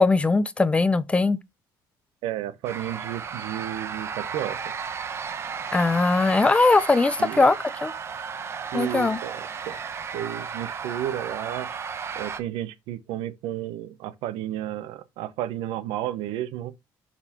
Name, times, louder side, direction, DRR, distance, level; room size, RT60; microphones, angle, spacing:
voice 1, 0.0-1.4 5.7-7.6 7.8-7.9 8.7-9.2, left 3 dB, 15° left, 0.4 m, -20 dB
voice 2, 2.2-4.7 7.2-7.5 8.7-9.8 10.1-11.7 12.1-16.7, right 12 dB, 90° right, 0.7 m, -32 dB
sound 1, 2.6-12.4, right 6 dB, 30° right, 0.7 m, -34 dB
9.7 x 4.2 x 2.9 m
cardioid pair, 145°, 8 cm